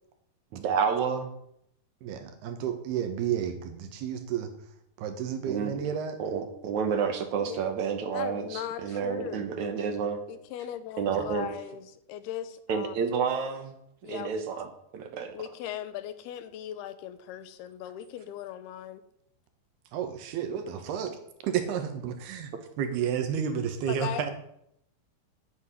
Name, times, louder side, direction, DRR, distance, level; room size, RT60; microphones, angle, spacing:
voice 1, 0.5-1.3 5.5-5.9 6.2-10.2 11.0-11.5 12.7-13.7 14.0-15.3, right 6 dB, 60° right, 7 dB, 2.1 m, -30 dB
voice 2, 2.0-4.5 5.0-6.2 11.1-11.3 19.9-22.5 22.8-24.3, right 8 dB, 90° right, 7 dB, 3.5 m, -31 dB
voice 3, 8.1-9.5 10.3-13.0 14.0-14.5 15.3-19.0 23.9-24.3, left 11 dB, 85° left, 12 dB, 2.9 m, -38 dB
9.6 x 8.2 x 9.7 m, 0.75 s
omnidirectional pair, 4.4 m